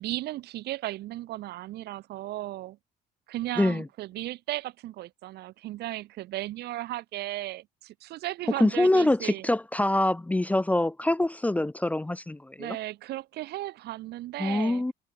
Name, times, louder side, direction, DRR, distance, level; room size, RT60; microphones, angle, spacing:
voice 1, 0.0-2.8 3.3-9.5 12.6-14.8, right 16 dB, 75° right, 3.2 m, -35 dB
voice 2, 8.6-12.8 14.4-14.9, left 1 dB, 10° left, 0.6 m, -25 dB
cardioid pair, 110°, 17 cm